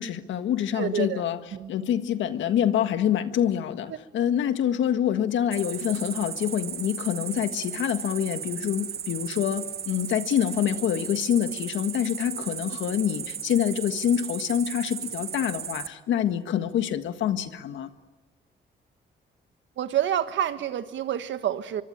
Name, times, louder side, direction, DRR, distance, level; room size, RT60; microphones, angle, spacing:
voice 1, 0.0-17.9, left 10 dB, 90° left, 9 dB, 1.6 m, -26 dB
voice 2, 0.8-1.2 1.5-1.7 19.8-21.8, right 10 dB, 80° right, 11 dB, 1.5 m, -28 dB
Cricket, 5.5-15.9, right 8 dB, 55° right, 1.2 m, -35 dB
24.5 x 24.0 x 8.9 m, 1.3 s
cardioid pair, 75°, 19 cm